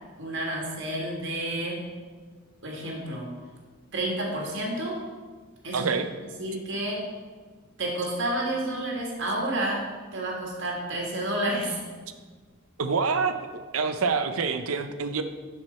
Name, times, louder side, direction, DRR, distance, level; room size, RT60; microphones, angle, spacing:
voice 1, 0.2-1.9 2.6-3.3 3.9-5.0 5.6-5.9 6.4-7.0 7.8-9.9 10.1-11.8, right 1 dB, 60° right, -1 dB, 1.9 m, -30 dB
voice 2, 5.7-6.1 12.8-13.3 13.7-15.2, right 5 dB, 90° right, 9 dB, 0.6 m, -26 dB
11.0 x 4.8 x 4.2 m, 1.5 s
head